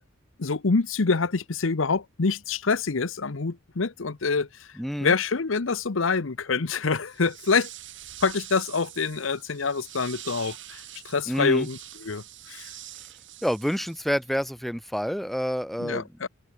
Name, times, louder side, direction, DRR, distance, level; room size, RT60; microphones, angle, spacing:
voice 1, 0.4-4.7 5.0-7.7 8.2-12.7 15.8-16.3, left 4 dB, 70° left, 0.9 m, -26 dB
voice 2, 4.8-5.1 11.3-11.7 13.4-16.1, equal, ahead, 2.0 m, -28 dB
sound 1, 7.0-14.3, right 13 dB, 65° right, 3.6 m, -45 dB
head